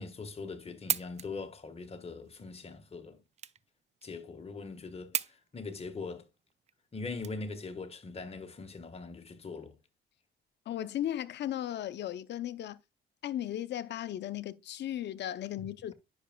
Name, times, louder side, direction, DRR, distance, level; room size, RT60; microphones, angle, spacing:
voice 1, 0.0-3.2 4.0-6.3 6.9-9.8, left 4 dB, 30° left, 1.3 m, -41 dB
sound 1, 0.6-7.9, right 8 dB, 35° right, 0.4 m, -39 dB
voice 2, 10.7-12.8 13.2-15.9, left 11 dB, 60° left, 0.6 m, -36 dB
9.8 x 5.9 x 2.2 m
cardioid pair, 90°, 20 cm